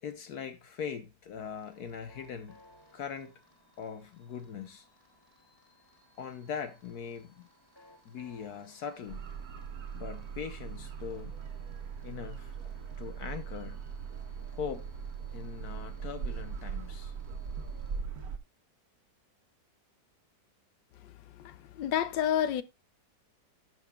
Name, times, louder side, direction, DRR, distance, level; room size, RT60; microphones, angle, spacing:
voice 1, 0.0-2.6 2.9-3.3 3.8-4.9 6.2-7.5 8.0-9.2 9.9-11.3 12.0-12.7 13.0-13.8 14.5-14.9 15.3-17.1, left 7 dB, 65° left, 1.2 m, -41 dB
sound 1, 1.4-18.0, left 1 dB, 10° left, 3.9 m, -63 dB
sound 2, 9.1-18.4, right 6 dB, 55° right, 1.5 m, -40 dB
voice 2, 21.0-22.6, left 10 dB, 80° left, 1.4 m, -30 dB
16.0 x 6.0 x 2.3 m
omnidirectional pair, 1.9 m